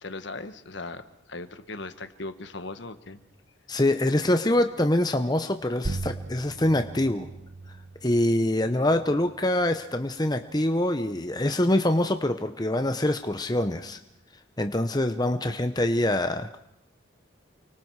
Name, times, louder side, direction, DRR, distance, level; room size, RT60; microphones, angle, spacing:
voice 1, 0.0-3.2, left 2 dB, 60° left, 10 dB, 1.4 m, -38 dB
voice 2, 3.7-7.3 8.0-14.0 14.6-16.6, left 1 dB, 20° left, 7 dB, 0.8 m, -25 dB
sound 1, 5.8-10.9, right 2 dB, 45° right, 0.8 m, -39 dB
29.5 x 24.5 x 4.8 m, 0.78 s
head